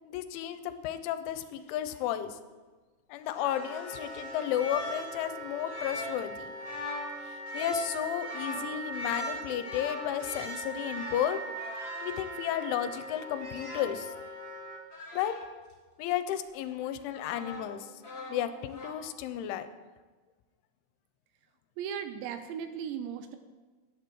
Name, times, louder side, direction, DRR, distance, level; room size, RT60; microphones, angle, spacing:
voice 1, 0.0-2.3 3.1-6.5 7.5-11.4 12.0-14.1 15.1-15.3 16.0-17.8 18.3-19.7, left 11 dB, 90° left, 11 dB, 3.0 m, -33 dB
sound 1, 1.7-2.1 3.3-14.1 14.9-15.5 16.5-17.8 18.0-19.0, left 1 dB, 50° left, 1.1 m, -42 dB
Wind instrument woodwind instrument, 3.4-14.8, right 2 dB, 40° right, 2.2 m, -41 dB
voice 2, 21.8-23.4, right 8 dB, 80° right, 8 dB, 2.9 m, -37 dB
17.0 x 11.0 x 3.1 m, 1.3 s
omnidirectional pair, 5.4 m